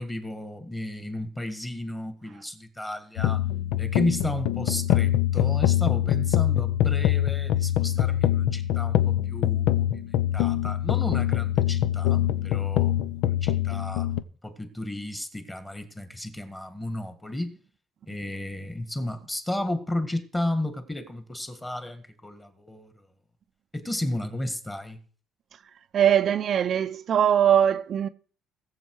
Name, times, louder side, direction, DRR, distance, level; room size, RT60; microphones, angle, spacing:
voice 1, 0.0-3.4 3.8-10.0 10.3-13.1 13.4-14.1 14.4-17.6 18.1-22.9 23.7-25.0, left 1 dB, 10° left, 1.6 m, -33 dB
sound 1, 3.2-14.2, left 12 dB, 90° left, 0.7 m, -24 dB
voice 2, 25.9-28.1, right 9 dB, 45° right, 0.5 m, -21 dB
19.0 x 7.4 x 4.7 m
cardioid pair, 145°, 0 cm